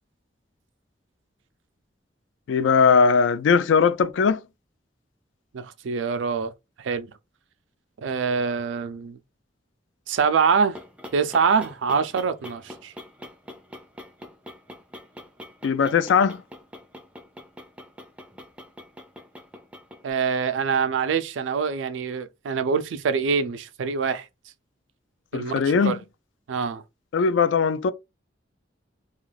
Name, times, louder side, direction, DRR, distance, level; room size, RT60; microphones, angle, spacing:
voice 1, 2.5-4.4 15.6-16.4 25.3-26.0 27.1-27.9, left 5 dB, 80° left, 0.3 m, -19 dB
voice 2, 5.5-6.5 6.8-7.1 8.0-9.2 10.1-10.8 11.1-12.9 20.0-24.3 25.3-26.0 26.5-26.8, right 5 dB, 90° right, 0.4 m, -25 dB
sound 1, 10.5-20.1, left 1 dB, 5° right, 0.4 m, -44 dB
2.4 x 2.3 x 3.2 m
head